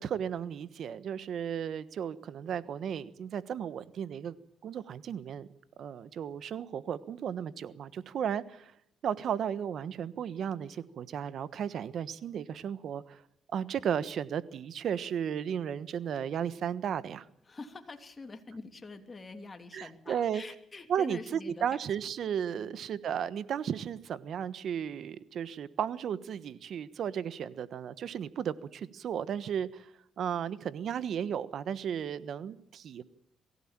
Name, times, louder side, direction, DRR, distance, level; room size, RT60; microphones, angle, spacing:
voice 1, 0.0-4.4 4.6-5.5 5.8-8.7 9.0-13.2 13.5-17.3 19.7-20.4 20.9-29.9 30.2-33.0, right 8 dB, 65° right, 16 dB, 1.2 m, -34 dB
voice 2, 17.5-21.8 22.5-22.8, left 3 dB, 30° left, 6 dB, 2.9 m, -45 dB
23.0 x 16.0 x 8.8 m, 0.72 s
cardioid pair, 90°, 0 cm